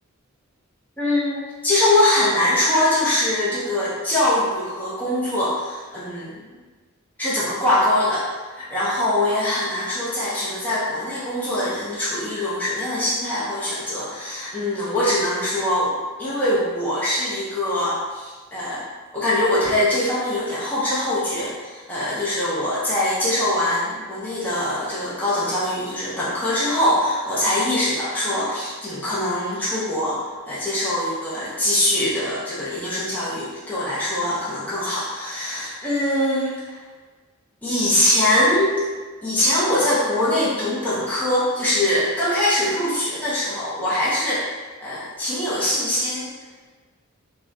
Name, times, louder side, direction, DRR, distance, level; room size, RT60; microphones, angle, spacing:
voice 1, 1.0-6.4 7.2-8.3 8.6-18.8 19.1-30.2 30.5-36.8 37.6-38.8 39.2-44.5 44.8-46.3, left 1 dB, 10° left, -10 dB, 0.9 m, -23 dB
5.2 x 2.3 x 2.8 m, 1.4 s
head